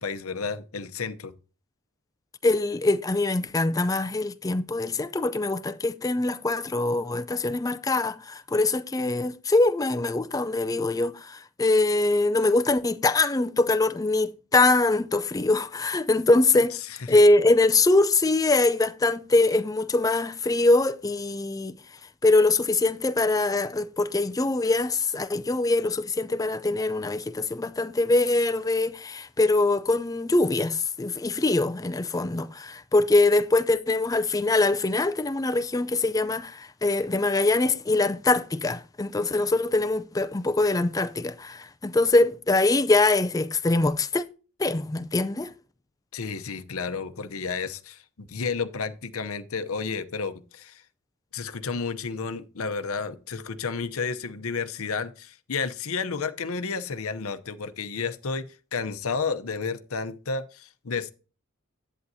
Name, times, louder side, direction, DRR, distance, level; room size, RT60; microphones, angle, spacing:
voice 1, 0.0-1.3 17.1-17.2 46.1-48.0 48.3-50.8 51.3-61.1, left 5 dB, 70° left, 0.8 m, -31 dB
voice 2, 2.4-16.7 17.1-21.8 22.2-44.2 44.6-45.5, left 2 dB, 15° left, 0.4 m, -23 dB
11.0 x 8.5 x 2.7 m
head